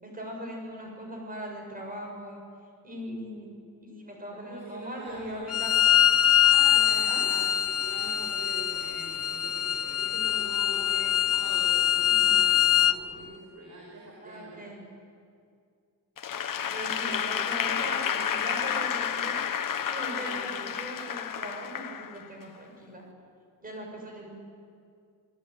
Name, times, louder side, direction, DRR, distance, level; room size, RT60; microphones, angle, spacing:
voice 1, 0.0-2.4 2.8-3.5 3.8-5.7 7.1-7.2 14.2-14.9 16.7-18.0 18.4-19.4 19.9-23.1 23.6-24.4, equal, 25° right, 0 dB, 7.3 m, -40 dB
voice 2, 4.4-5.8 6.4-14.6 16.8-18.8 20.0-20.7, right 2 dB, 55° right, -2 dB, 6.2 m, -44 dB
Bowed string instrument, 5.5-13.0, left 11 dB, 40° left, 0.8 m, -23 dB
Applause / Crowd, 16.2-22.4, left 8 dB, 65° left, 1.2 m, -31 dB
28.0 x 20.0 x 9.6 m, 2.3 s
wide cardioid pair, 175°, 35 cm